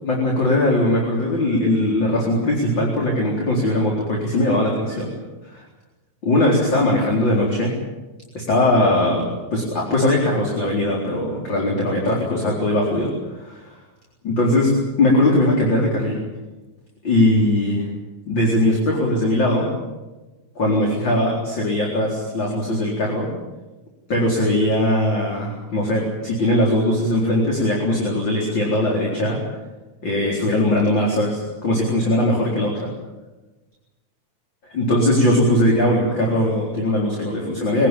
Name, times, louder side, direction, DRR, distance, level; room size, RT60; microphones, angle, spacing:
voice 1, 0.0-5.1 5.5-5.6 6.2-7.7 8.3-13.7 14.2-16.2 17.0-17.9 18.3-19.7 20.6-23.3 24.1-29.4 30.0-32.9 34.7-37.9, left 1 dB, 35° left, -2 dB, 4.7 m, -20 dB
24.5 x 18.0 x 9.0 m, 1.1 s
omnidirectional pair, 3.5 m